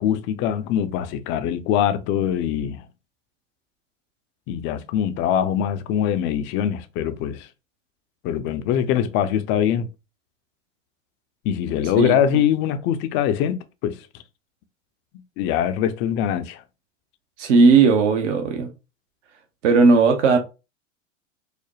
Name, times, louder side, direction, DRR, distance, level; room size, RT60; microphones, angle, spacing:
voice 1, 0.0-2.8 4.5-7.5 8.2-9.9 11.4-14.0 15.4-16.6, left 9 dB, 30° left, 0.4 m, -23 dB
voice 2, 17.4-18.7 19.6-20.4, right 4 dB, 65° right, 0.9 m, -16 dB
4.8 x 2.1 x 3.0 m
hypercardioid pair, 100°, 38 cm